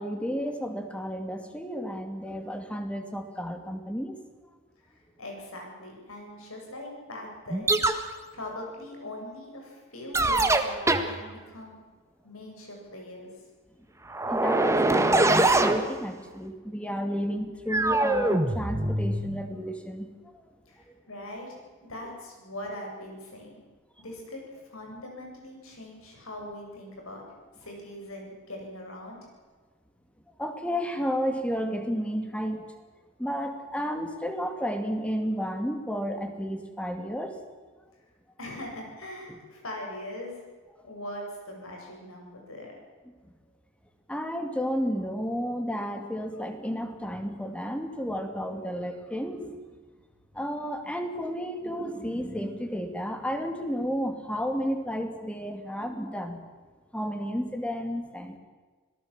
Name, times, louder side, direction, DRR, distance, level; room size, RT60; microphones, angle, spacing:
voice 1, 0.0-4.1 14.2-20.1 30.4-32.7 33.2-37.4 39.3-39.4 44.1-49.6 50.3-56.4 56.9-58.4, equal, 5° left, 6 dB, 2.5 m, -32 dB
voice 2, 5.2-7.8 8.3-11.8 12.2-13.3 20.7-23.5 24.0-24.4 24.7-27.2 27.6-29.2 38.4-40.4 40.8-42.8, left 1 dB, 85° left, 0 dB, 8.0 m, -41 dB
sound 1, 7.5-8.1 10.1-11.1 14.1-15.9 17.7-19.4, right 2 dB, 15° right, 1.5 m, -23 dB
26.0 x 18.0 x 7.4 m, 1.4 s
head